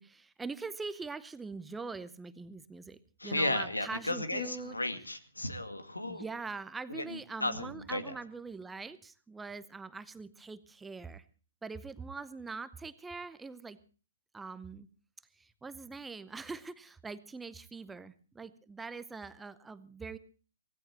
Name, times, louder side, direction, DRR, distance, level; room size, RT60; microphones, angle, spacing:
voice 1, 0.0-4.7 6.1-11.2 11.6-13.8 14.3-14.9 15.4-20.2, right 4 dB, 10° right, 14 dB, 0.8 m, -43 dB
voice 2, 3.2-6.3 6.9-8.2, left 1 dB, 85° left, 9 dB, 2.1 m, -34 dB
24.5 x 17.0 x 3.0 m, 0.38 s
figure-of-eight pair, 125°, 0 cm